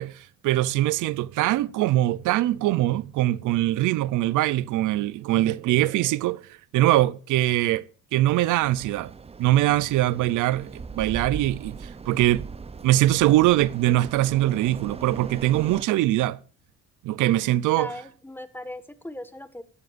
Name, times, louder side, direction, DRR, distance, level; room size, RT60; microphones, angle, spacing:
voice 1, 0.0-6.4 6.7-7.8 8.1-9.1 9.4-12.5 12.8-16.4 17.0-17.9, right 15 dB, 90° right, 0.6 m, -22 dB
sound 1, 8.6-15.8, right 5 dB, 20° right, 0.6 m, -39 dB
voice 2, 17.7-19.6, left 1 dB, 5° left, 1.5 m, -38 dB
16.5 x 12.5 x 2.5 m
cardioid pair, 90°, 30 cm